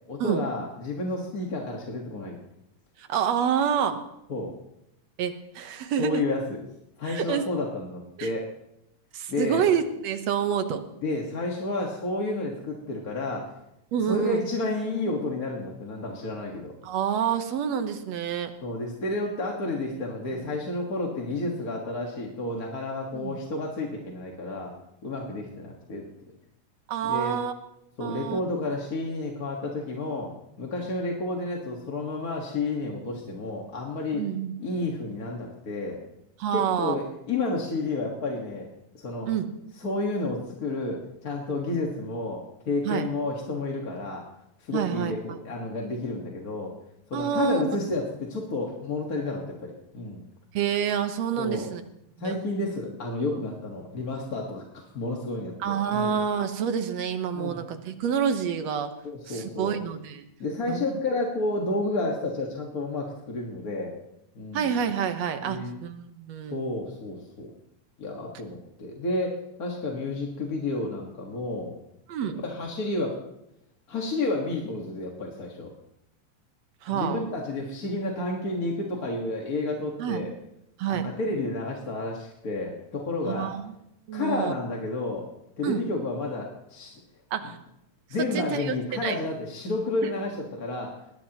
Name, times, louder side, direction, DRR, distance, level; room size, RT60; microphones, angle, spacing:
voice 1, 0.1-2.4 4.3-4.5 6.0-6.6 7.0-8.5 9.3-9.7 11.0-13.6 14.0-16.7 18.6-24.7 25.0-26.0 27.1-27.4 28.0-30.3 30.6-34.2 34.6-36.0 36.5-38.7 38.9-39.3 39.8-44.2 44.6-46.7 47.1-50.2 51.4-51.7 52.2-56.2 57.3-57.6 59.0-59.8 60.4-63.9 64.3-64.7 65.4-65.8 66.5-67.5 68.0-71.7 72.2-73.2 73.9-75.7 76.9-80.3 80.9-83.5 84.1-85.3 85.6-87.0 88.1-91.0, left 2 dB, 35° left, -1 dB, 1.8 m, -31 dB
voice 2, 3.0-4.0 5.2-6.2 7.1-7.4 8.2-8.3 9.1-10.8 13.9-14.4 16.8-18.5 20.3-20.4 23.1-23.4 26.9-27.5 28.0-28.4 34.1-34.5 36.4-37.0 39.3-39.5 42.9-43.1 44.7-45.2 47.1-47.8 50.5-51.8 52.2-52.4 55.6-58.9 59.3-60.2 60.7-60.8 64.5-66.6 72.1-72.4 76.8-77.2 80.0-80.2 80.8-81.1 83.3-83.6 84.1-84.5 85.6-85.8 87.3-87.6 88.2-88.7 89.0-89.2, right 8 dB, 70° right, 8 dB, 2.2 m, -28 dB
21.0 x 19.0 x 3.0 m, 0.82 s
omnidirectional pair, 3.3 m